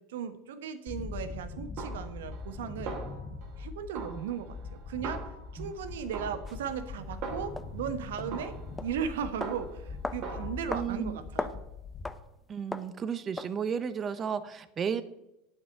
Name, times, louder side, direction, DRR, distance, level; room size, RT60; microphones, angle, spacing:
voice 1, 0.1-2.9 3.6-5.2 5.5-8.6 8.8-11.6, right 7 dB, 80° right, 10 dB, 1.3 m, -37 dB
sound 1, 0.9-12.1, left 4 dB, 35° left, 2.0 m, -42 dB
Snare drum, 1.8-2.6 2.9-3.6 3.9-5.7 6.1-7.8 8.3-9.9 10.2-10.5, right 5 dB, 60° right, 2.6 m, -41 dB
sound 2, 6.5-6.6 7.6-7.7 8.2-8.3 8.8-8.9 9.4-9.6 10.0-10.2 10.7-10.9 11.2-11.6 12.0-12.2 12.7-12.9 13.4-13.6, left 2 dB, 10° left, 1.0 m, -36 dB
voice 2, 10.7-11.2 12.5-15.0, right 7 dB, 35° right, 14 dB, 1.1 m, -33 dB
8.8 x 8.0 x 8.1 m, 0.88 s
hypercardioid pair, 90°, 0 cm